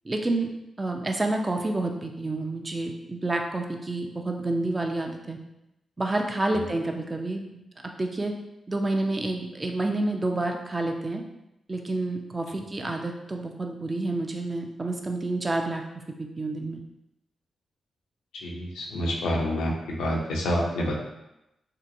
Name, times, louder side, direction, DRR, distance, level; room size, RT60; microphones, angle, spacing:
voice 1, 0.1-0.5 0.8-5.4 6.0-7.5 8.0-8.3 8.7-11.2 11.7-15.8 16.2-16.8, right 2 dB, 30° right, 3 dB, 0.4 m, -29 dB
voice 2, 18.3-21.0, equal, 90° left, -2 dB, 0.5 m, -28 dB
2.8 x 2.2 x 2.5 m, 0.90 s
supercardioid pair, 45°, 0 cm